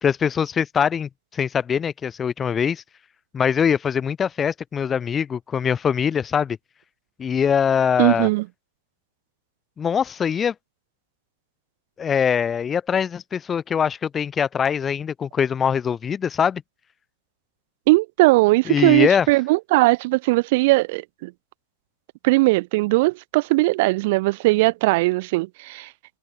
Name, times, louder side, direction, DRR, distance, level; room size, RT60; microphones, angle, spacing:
voice 1, 0.0-2.8 3.3-6.6 7.2-8.3 9.8-10.5 12.0-16.6 18.7-19.3, left 7 dB, 20° left, 1.1 m, -22 dB
voice 2, 8.0-8.5 17.9-21.3 22.2-25.9, right 22 dB, 50° right, 1.8 m, -19 dB
hypercardioid pair, 135°, 0 cm